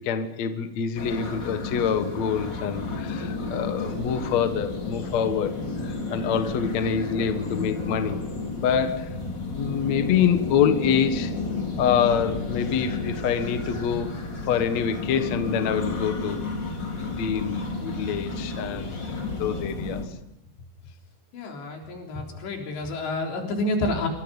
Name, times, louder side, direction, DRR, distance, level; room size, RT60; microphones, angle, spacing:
voice 1, 0.0-8.2 8.6-9.1 9.5-11.3 11.8-14.1 14.5-16.5 17.0-18.9 19.4-20.0, left 7 dB, 55° left, 8 dB, 2.0 m, -26 dB
sound 1, 1.0-20.1, left 3 dB, 25° left, 3.3 m, -31 dB
voice 2, 21.3-24.1, left 2 dB, 75° left, 1 dB, 6.0 m, -29 dB
27.0 x 23.5 x 5.4 m, 0.87 s
omnidirectional pair, 5.1 m